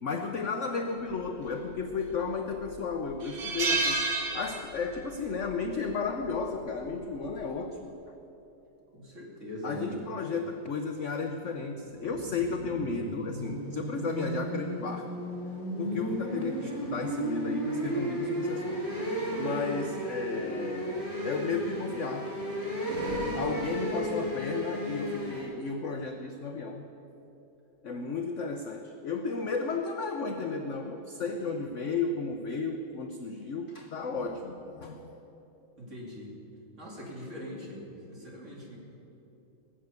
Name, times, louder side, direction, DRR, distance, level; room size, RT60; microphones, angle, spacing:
voice 1, 0.0-8.0 9.6-15.2 15.8-18.8 19.4-22.4 23.3-26.9 27.8-35.2, left 4 dB, 70° left, 6 dB, 0.7 m, -34 dB
sound 1, 1.8-2.3 2.7-2.8 3.2-5.0 5.3-5.5 6.8-7.1, right 3 dB, 85° right, 2.7 m, -30 dB
voice 2, 8.9-10.0 15.8-16.0 35.8-36.4 36.8-38.8, equal, 35° right, -2 dB, 2.9 m, -42 dB
sound 2, 11.8-25.4, right 1 dB, 55° right, 4.3 m, -34 dB
19.0 x 7.5 x 8.2 m, 3.0 s
omnidirectional pair, 2.1 m